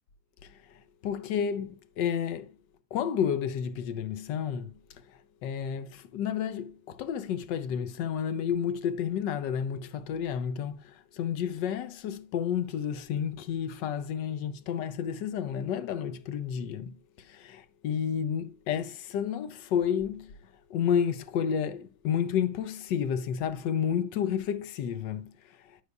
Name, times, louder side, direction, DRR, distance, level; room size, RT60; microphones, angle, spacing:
voice 1, 0.4-2.5 2.9-4.7 5.1-20.3 20.7-25.8, left 8 dB, 65° left, 1.2 m, -31 dB
10.5 x 8.1 x 2.3 m
omnidirectional pair, 2.3 m